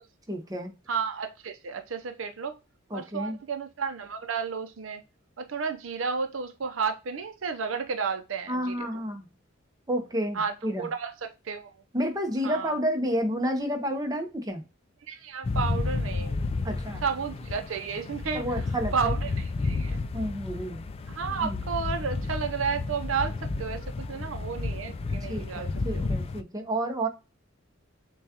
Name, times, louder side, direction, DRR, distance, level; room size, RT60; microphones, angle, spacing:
voice 1, 0.3-0.7 2.9-3.4 8.5-9.3 9.9-10.9 11.9-14.6 16.6-17.0 18.3-19.1 20.1-20.8 21.4-21.6 25.3-27.1, equal, 20° right, 0.8 m, -30 dB
voice 2, 0.9-2.5 2.9-5.0 5.4-8.9 10.3-11.7 12.4-12.8 15.1-16.4 17.0-20.0 21.1-26.1, right 5 dB, 75° right, 0.6 m, -32 dB
sound 1, 15.4-26.4, left 3 dB, 30° left, 0.3 m, -32 dB
6.9 x 2.3 x 2.8 m
head